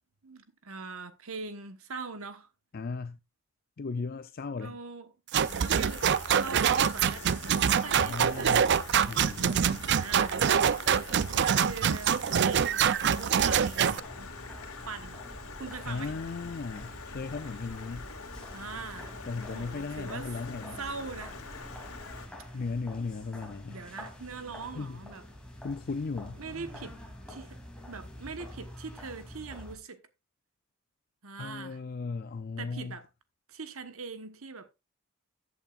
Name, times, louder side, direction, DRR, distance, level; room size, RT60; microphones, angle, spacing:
voice 1, 0.2-2.5 4.6-5.1 5.6-6.0 6.4-8.8 9.3-9.4 9.9-10.4 11.0-11.1 11.4-12.9 13.1-14.5 14.8-15.2 15.6-16.1 18.5-19.1 19.5-20.3 20.8-21.4 23.7-25.2 26.4-27.0 27.3-27.6 27.9-30.0 31.2-31.8 32.6-33.1 33.5-34.7, right 4 dB, 75° right, 1.2 m, -42 dB
voice 2, 2.7-3.2 3.8-4.8 5.5-5.6 8.0-8.7 9.1-9.8 15.9-18.1 19.3-20.8 22.5-23.8 24.7-25.0 25.6-26.4 31.4-32.9, left 4 dB, 45° left, 0.4 m, -36 dB
sound 1, 5.3-14.0, right 8 dB, 55° right, 0.4 m, -25 dB
Stream, 5.5-22.3, left 3 dB, 75° left, 2.2 m, -44 dB
sound 2, 13.7-29.8, left 1 dB, 5° left, 2.8 m, -47 dB
14.0 x 8.3 x 2.5 m
head